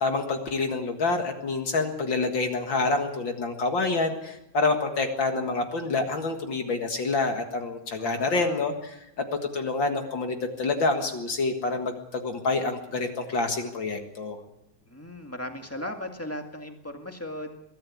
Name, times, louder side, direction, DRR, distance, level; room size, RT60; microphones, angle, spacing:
voice 1, 0.0-9.0 9.5-14.4, left 3 dB, 45° left, 5 dB, 2.1 m, -27 dB
voice 2, 8.0-8.6 14.9-17.6, left 1 dB, 5° left, 4 dB, 1.3 m, -37 dB
23.0 x 13.5 x 8.6 m, 0.85 s
omnidirectional pair, 3.4 m